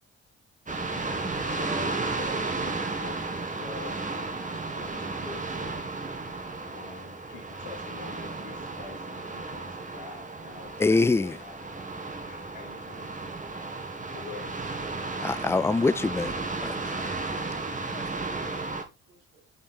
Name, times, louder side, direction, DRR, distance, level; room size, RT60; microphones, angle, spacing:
sound 1, 0.7-18.8, right 3 dB, 20° right, 1.9 m, -34 dB
voice 1, 1.2-4.0 4.7-5.9 6.7-11.6 12.3-13.1 14.1-14.5, left 5 dB, 70° left, 2.1 m, -45 dB
voice 2, 10.8-11.4 15.2-16.3 16.6-17.2 17.9-18.0, left 3 dB, 10° left, 0.4 m, -25 dB
voice 3, 16.8-19.5, right 3 dB, 80° right, 1.9 m, -63 dB
7.1 x 4.5 x 4.5 m
hypercardioid pair, 45°, 35 cm